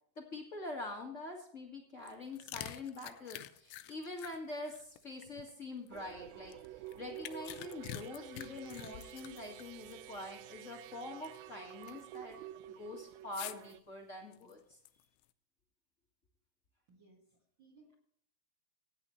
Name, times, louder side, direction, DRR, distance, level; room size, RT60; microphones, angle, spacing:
voice 1, 0.1-12.4 12.7-14.8, left 2 dB, 70° left, 0 dB, 0.7 m, -45 dB
sound 1, 2.0-6.0 6.5-10.0 10.2-10.3 10.9-11.5 11.8-12.2 13.3-13.7 14.3-15.2, left 14 dB, 85° left, 2.8 m, -47 dB
sound 2, 5.9-13.8, right 14 dB, 85° right, 2.1 m, -50 dB
voice 2, 16.9-17.9, right 3 dB, 40° right, 2 dB, 1.9 m, -64 dB
17.0 x 9.5 x 3.1 m, 0.66 s
omnidirectional pair, 4.7 m